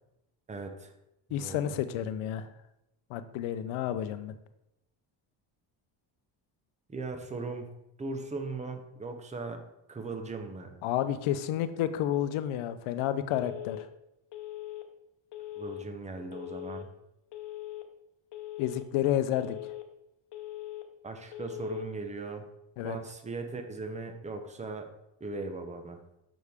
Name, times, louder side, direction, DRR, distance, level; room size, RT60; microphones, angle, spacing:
voice 1, 0.5-0.9 1.4-1.8 6.9-7.7 8.0-9.6 9.9-10.8 15.5-16.9 21.0-22.4 22.8-24.9 25.2-26.0, right 3 dB, 15° right, 6 dB, 0.7 m, -38 dB
voice 2, 1.3-2.5 3.1-4.3 10.8-13.9 18.6-19.6 22.8-23.0, left 11 dB, 85° left, 11 dB, 0.7 m, -30 dB
Telephone, 13.3-13.8 14.3-14.8 15.3-15.8 16.3-16.8 17.3-17.8 18.3-18.8 19.3-19.8 20.3-20.8 21.3-21.8, left 15 dB, 60° left, 0.9 m, -41 dB
6.5 x 6.1 x 3.5 m, 0.86 s
cardioid pair, 140°, 48 cm